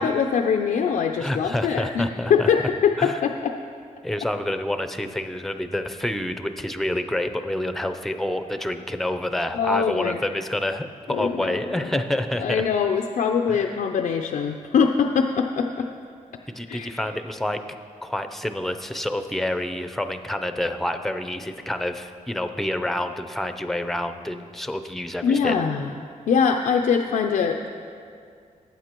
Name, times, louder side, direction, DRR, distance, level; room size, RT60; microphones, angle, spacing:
voice 1, 0.0-3.6 9.5-10.2 11.1-11.6 12.4-15.9 16.7-17.0 25.2-25.9 26.3-27.7, left 6 dB, 85° left, 3 dB, 0.5 m, -23 dB
voice 2, 1.2-2.5 3.0-3.2 4.0-12.7 13.5-13.7 16.5-17.6 18.0-25.6, left 1 dB, ahead, 9 dB, 0.5 m, -28 dB
18.5 x 8.9 x 3.0 m, 2.3 s
wide cardioid pair, 105°, 13 cm